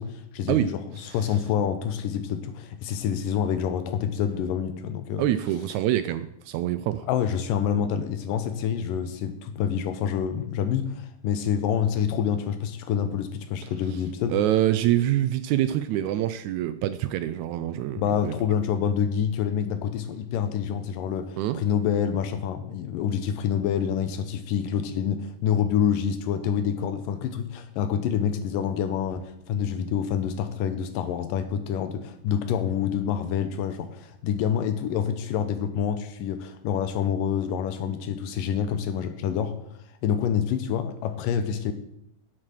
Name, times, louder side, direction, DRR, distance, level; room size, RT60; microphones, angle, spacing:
voice 1, 0.0-5.2 7.1-14.4 18.0-39.6 40.0-41.7, left 8 dB, 85° left, 9 dB, 2.5 m, -27 dB
voice 2, 5.2-7.1 14.3-18.3 21.4-21.6, right 13 dB, 85° right, 12 dB, 1.7 m, -25 dB
9.4 x 7.5 x 6.3 m, 0.75 s
omnidirectional pair, 3.8 m